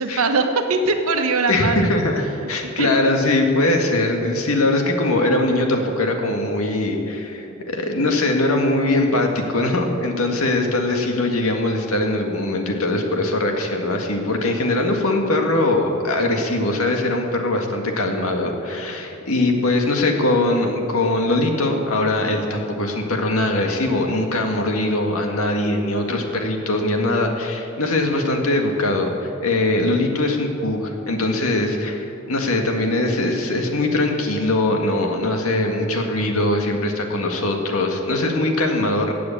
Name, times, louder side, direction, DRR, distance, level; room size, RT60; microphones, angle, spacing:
voice 1, 0.0-1.9 2.8-2.9 18.9-19.1, right 3 dB, 85° right, 5 dB, 1.4 m, -21 dB
voice 2, 1.5-39.1, left 2 dB, 80° left, 3 dB, 1.9 m, -21 dB
16.0 x 8.5 x 8.4 m, 2.8 s
head